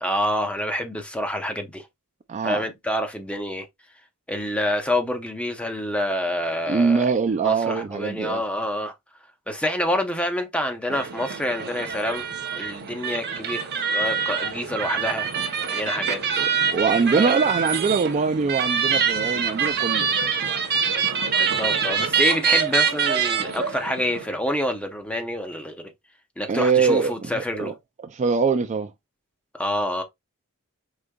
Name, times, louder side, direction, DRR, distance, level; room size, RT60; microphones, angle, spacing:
voice 1, 0.0-1.9 2.4-3.7 4.3-8.9 9.5-12.3 12.5-15.3 15.7-16.2 17.1-17.4 21.4-25.9 26.4-27.7 29.5-30.0, left 1 dB, 5° left, 0.7 m, -27 dB
voice 2, 2.3-2.6 6.7-8.4 16.4-20.1 26.5-27.7 28.0-28.9, right 5 dB, 30° right, 0.4 m, -23 dB
sound 1, 10.9-24.3, right 6 dB, 50° right, 0.8 m, -25 dB
5.0 x 3.7 x 2.3 m
head